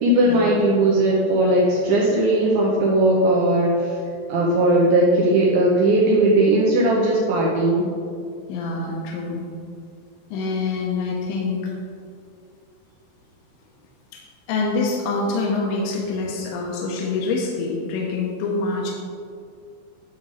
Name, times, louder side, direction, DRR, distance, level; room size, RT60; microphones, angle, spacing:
voice 1, 0.0-4.0 4.3-7.8, right 1 dB, 80° right, -3 dB, 2.2 m, -18 dB
voice 2, 8.5-9.4 10.3-11.7 14.1-14.2 14.5-18.9, left 3 dB, 75° left, -2 dB, 2.9 m, -25 dB
10.5 x 3.7 x 6.3 m, 2.3 s
omnidirectional pair, 5.5 m